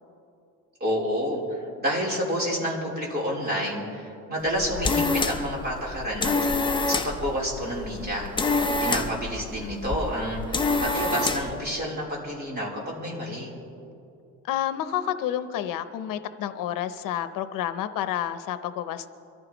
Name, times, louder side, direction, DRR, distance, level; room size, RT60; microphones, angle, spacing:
voice 1, 0.8-1.4 1.8-6.3 6.9-13.5, equal, 30° right, -4 dB, 3.6 m, -29 dB
sound 1, 4.5-11.6, left 3 dB, 15° left, 0.6 m, -27 dB
voice 2, 8.7-9.1 14.5-19.1, left 11 dB, 80° left, 11 dB, 0.8 m, -30 dB
24.0 x 14.5 x 3.0 m, 2.7 s
cardioid pair, 165°, 33 cm